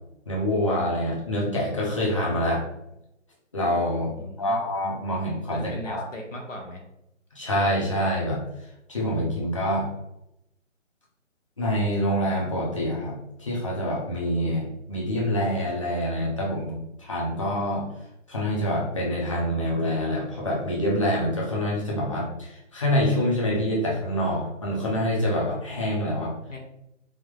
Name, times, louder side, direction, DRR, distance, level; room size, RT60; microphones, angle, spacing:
voice 1, 0.3-2.7 3.5-4.1 4.4-5.6 5.8-6.0 7.3-8.4 8.9-9.9 11.6-17.9 18.3-26.3, equal, 25° left, -5 dB, 0.7 m, -26 dB
voice 2, 4.2-4.6 5.5-6.8 26.5-26.6, left 1 dB, 75° left, 1 dB, 0.9 m, -37 dB
3.5 x 2.1 x 3.6 m, 0.84 s
figure-of-eight pair, 150°, 38 cm